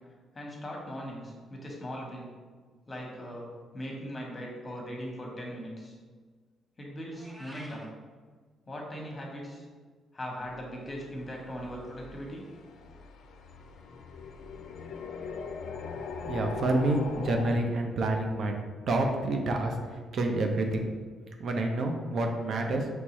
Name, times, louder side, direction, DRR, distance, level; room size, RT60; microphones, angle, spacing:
voice 1, 0.3-2.3 2.9-3.5 3.7-5.9 6.8-7.9 8.7-9.7 10.1-12.4, equal, 25° left, -1 dB, 1.1 m, -39 dB
Meow, 7.1-7.9, equal, 10° right, 0.6 m, -48 dB
sound 1, 10.4-17.5, left 5 dB, 70° left, 0.4 m, -41 dB
voice 2, 16.3-18.5 18.9-20.9 21.4-22.9, right 2 dB, 60° right, 3 dB, 0.5 m, -28 dB
4.6 x 3.2 x 3.1 m, 1.5 s
cardioid pair, 90°, 0 cm